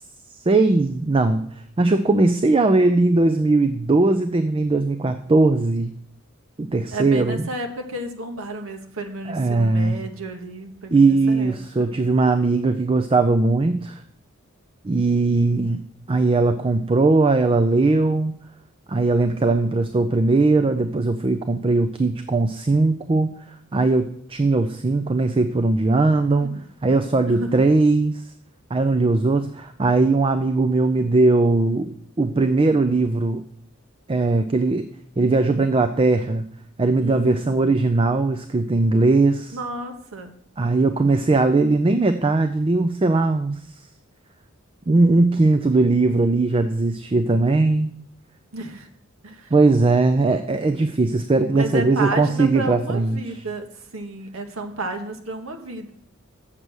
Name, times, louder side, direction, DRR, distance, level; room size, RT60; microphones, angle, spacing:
voice 1, 0.5-1.4 1.8-5.9 6.6-7.5 9.3-10.0 10.9-14.0 14.8-15.8 16.1-18.3 18.9-23.3 23.7-26.5 26.8-28.2 28.7-33.4 34.1-34.9 35.2-36.4 36.8-39.6 40.6-43.6 44.9-47.9 49.5-53.4, right 3 dB, 25° right, 8 dB, 0.4 m, -19 dB
voice 2, 6.9-11.9 26.4-26.6 27.3-27.6 37.0-37.5 39.5-40.3 48.5-48.9 49.2-49.5 51.5-53.7 53.9-55.9, right 2 dB, 75° right, 4 dB, 1.2 m, -32 dB
7.4 x 6.8 x 6.2 m, 0.64 s
head